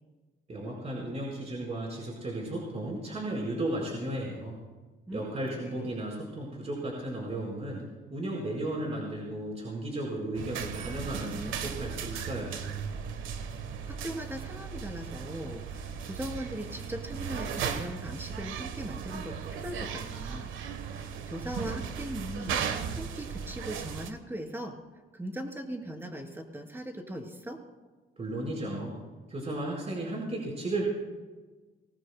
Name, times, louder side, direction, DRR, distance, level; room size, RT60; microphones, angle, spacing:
voice 1, 0.5-4.6 5.1-7.8 8.1-12.7 28.2-29.0 29.3-30.8, right 1 dB, 35° right, -2 dB, 4.8 m, -34 dB
sound 1, 10.3-24.1, right 7 dB, 80° right, 1.3 m, -36 dB
voice 2, 11.2-11.8 13.9-20.5 20.8-24.8 25.1-27.6, equal, 10° right, 2 dB, 3.2 m, -39 dB
24.0 x 19.0 x 2.3 m, 1.3 s
cardioid pair, 90°, 20 cm